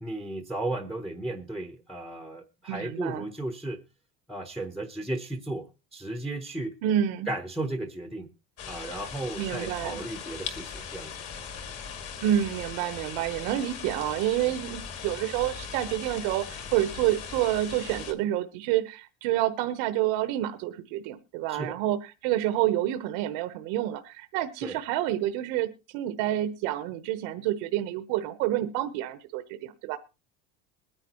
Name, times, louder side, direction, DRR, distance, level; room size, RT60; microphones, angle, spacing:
voice 1, 0.0-3.8 4.3-6.7 7.3-8.3 8.7-11.1 21.5-21.8 24.6-24.8, right 2 dB, ahead, 6 dB, 0.8 m, -35 dB
voice 2, 2.7-3.3 6.8-7.3 9.4-10.0 12.2-30.0, right 13 dB, 75° right, 9 dB, 1.0 m, -28 dB
sound 1, 8.6-18.1, left 6 dB, 45° left, 2.1 m, -39 dB
22.0 x 9.9 x 3.0 m, 0.29 s
cardioid pair, 165°, 34 cm